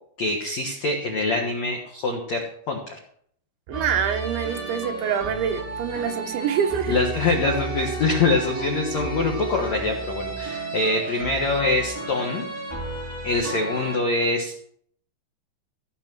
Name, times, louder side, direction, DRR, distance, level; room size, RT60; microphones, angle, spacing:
voice 1, 0.2-2.9 6.9-12.4 13.2-14.5, left 3 dB, 75° left, 1 dB, 1.6 m, -24 dB
sound 1, 3.7-14.0, right 3 dB, 5° right, 3.7 m, -32 dB
voice 2, 3.7-7.0, right 8 dB, 75° right, 5 dB, 3.4 m, -26 dB
17.0 x 6.1 x 6.2 m, 0.64 s
omnidirectional pair, 5.5 m